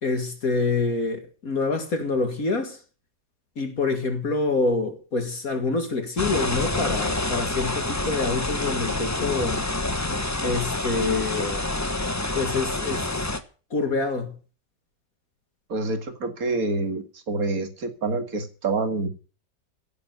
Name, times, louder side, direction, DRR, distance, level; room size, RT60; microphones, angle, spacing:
voice 1, 0.0-2.8 3.6-9.6 10.4-11.7 12.4-13.1 13.7-14.3, left 3 dB, 50° left, 2.3 m, -26 dB
sound 1, 6.2-13.4, left 2 dB, 15° left, 0.8 m, -27 dB
voice 2, 15.7-19.1, right 3 dB, 50° right, 2.4 m, -27 dB
16.5 x 6.9 x 9.4 m
omnidirectional pair, 2.0 m